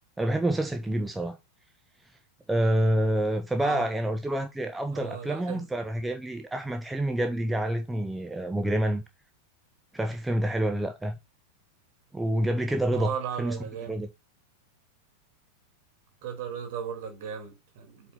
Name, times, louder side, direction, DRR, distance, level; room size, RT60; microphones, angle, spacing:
voice 1, 0.2-1.4 2.5-9.0 9.9-11.2 12.1-13.1 13.4-13.6 13.9-14.1, right 1 dB, 5° right, 0.8 m, -27 dB
voice 2, 4.9-5.7 12.9-14.0 16.2-18.1, right 8 dB, 50° right, 3.0 m, -36 dB
8.0 x 4.3 x 4.1 m
figure-of-eight pair, 90°, 0 cm